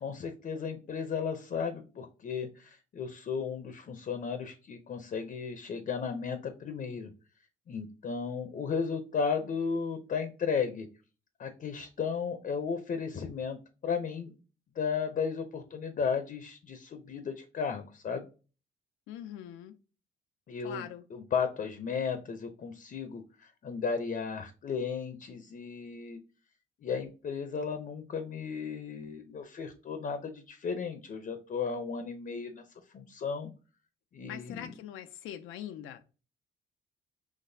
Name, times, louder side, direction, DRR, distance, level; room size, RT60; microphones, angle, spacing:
voice 1, 0.0-7.1 7.7-10.9 11.4-14.3 14.8-18.3 20.5-26.2 26.8-32.6 32.9-33.5 34.1-34.7, left 6 dB, 45° left, 0.6 m, -34 dB
voice 2, 19.1-19.8 20.6-21.0 34.3-36.0, left 11 dB, 90° left, 0.4 m, -42 dB
5.9 x 3.1 x 2.7 m
cardioid pair, 90°, 20 cm